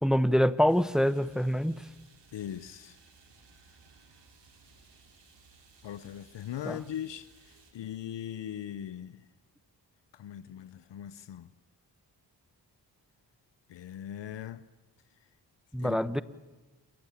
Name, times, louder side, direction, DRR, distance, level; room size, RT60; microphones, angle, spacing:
voice 1, 0.0-1.9 6.6-6.8 15.7-16.2, equal, ahead, 1.1 m, -25 dB
sound 1, 0.7-7.7, right 4 dB, 75° right, 5.1 m, -60 dB
voice 2, 2.3-3.0 5.8-9.3 10.1-11.5 13.7-14.6 15.8-16.2, left 10 dB, 80° left, 0.9 m, -40 dB
28.0 x 15.0 x 8.6 m
supercardioid pair, 40°, 42 cm